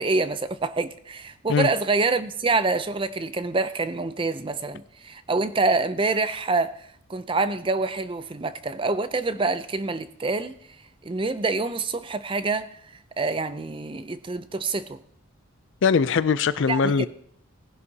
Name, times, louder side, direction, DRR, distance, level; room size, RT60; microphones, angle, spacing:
voice 1, 0.0-10.5 11.0-12.8 13.2-15.0 16.7-17.1, right 3 dB, 25° right, 0.4 m, -26 dB
voice 2, 15.8-17.1, left 5 dB, 55° left, 0.4 m, -21 dB
18.5 x 11.0 x 2.8 m
head